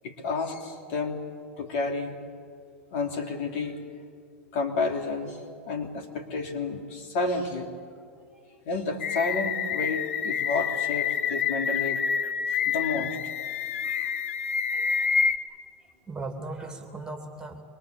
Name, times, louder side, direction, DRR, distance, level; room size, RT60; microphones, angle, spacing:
voice 1, 0.0-1.3 1.6-2.2 2.9-3.8 4.5-5.4 5.7-7.7 8.6-12.0 12.7-13.2 14.8-14.9, left 3 dB, 60° left, 4 dB, 2.8 m, -30 dB
sound 1, 9.0-15.4, left 6 dB, 80° left, 0.9 m, -28 dB
voice 2, 13.8-14.2 14.7-15.1 16.1-17.6, right 3 dB, 10° right, 5 dB, 2.8 m, -39 dB
24.5 x 22.0 x 8.1 m, 2.2 s
hypercardioid pair, 105°, 7 cm